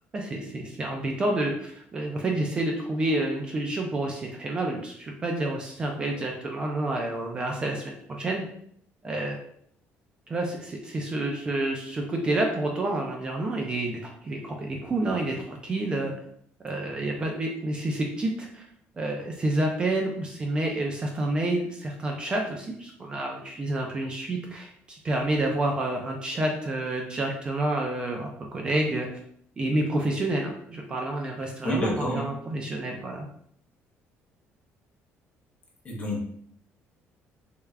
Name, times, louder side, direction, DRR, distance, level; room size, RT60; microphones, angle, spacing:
voice 1, 0.1-8.5 9.0-9.4 10.3-16.1 16.6-18.7 19.0-29.1 29.6-33.2, right 2 dB, 20° right, 1 dB, 0.3 m, -29 dB
voice 2, 31.6-32.2 35.8-36.3, left 1 dB, 30° left, -1 dB, 0.8 m, -28 dB
3.4 x 2.3 x 3.2 m, 0.65 s
cardioid pair, 175°, 5 cm